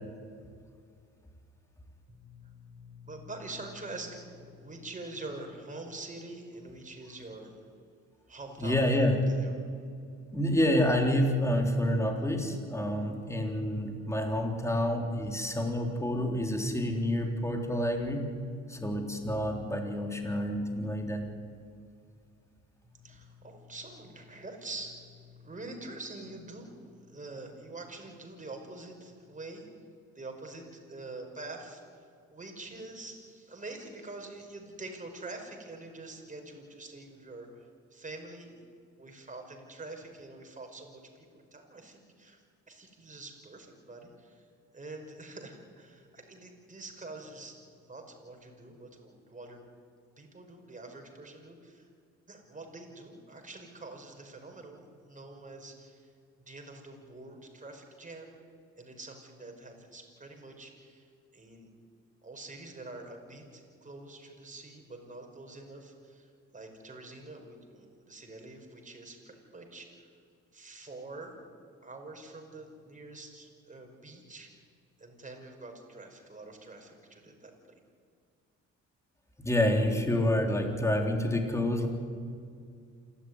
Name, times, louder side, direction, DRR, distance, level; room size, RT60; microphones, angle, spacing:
voice 1, 2.1-7.5 8.3-9.5 22.8-29.7 30.2-31.8 32.3-38.5 39.0-44.4 44.7-49.6 50.2-51.9 52.3-56.0 56.5-58.4 58.8-61.7 62.2-66.3 66.5-70.0 70.5-71.4 71.8-74.5 75.0-77.5, right 2 dB, 25° right, 3 dB, 5.4 m, -46 dB
voice 2, 8.6-9.2 10.3-18.3 18.7-21.3 79.4-81.9, left 1 dB, 10° left, 2 dB, 3.6 m, -28 dB
28.0 x 13.0 x 9.9 m, 2.3 s
cardioid pair, 90°, 30 cm